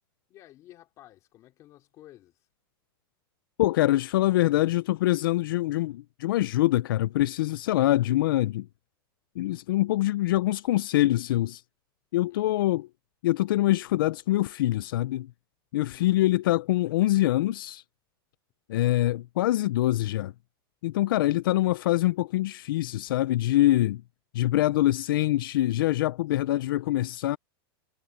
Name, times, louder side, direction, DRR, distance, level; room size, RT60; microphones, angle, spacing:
voice 1, 0.3-2.4 12.3-12.8 15.9-16.3 26.4-26.9, left 14 dB, 25° left, 3.7 m, -54 dB
voice 2, 3.6-8.7 9.4-11.6 12.1-12.9 13.2-15.3 15.7-17.8 18.7-20.3 20.8-24.0 24.3-27.4, left 15 dB, 65° left, 0.5 m, -24 dB
supercardioid pair, 180°, 13 cm